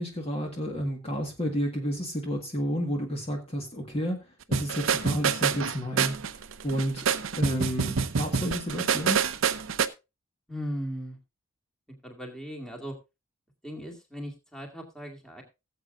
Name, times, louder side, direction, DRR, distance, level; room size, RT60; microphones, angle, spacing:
voice 1, 0.0-6.2 6.6-9.3, equal, 30° left, 2 dB, 1.7 m, -31 dB
sound 1, 4.5-9.9, right 6 dB, 60° right, 0.7 m, -27 dB
voice 2, 10.5-11.2 12.0-12.9 13.6-15.4, equal, 5° left, 2 dB, 2.1 m, -37 dB
18.0 x 7.8 x 2.5 m, 0.26 s
head